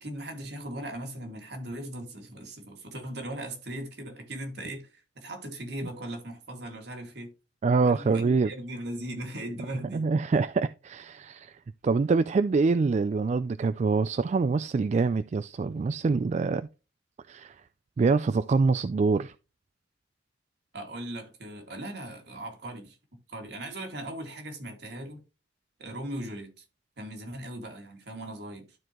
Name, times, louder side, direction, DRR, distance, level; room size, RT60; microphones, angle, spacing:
voice 1, 0.0-7.3 7.8-10.1 20.7-23.0 23.3-25.2 25.8-26.6 27.0-28.7, right 1 dB, 65° right, 2.2 m, -38 dB
voice 2, 7.6-8.5 9.9-11.6 11.8-16.7 17.3-17.6 18.0-19.3, right 4 dB, 40° right, 0.3 m, -25 dB
12.5 x 4.5 x 3.0 m
head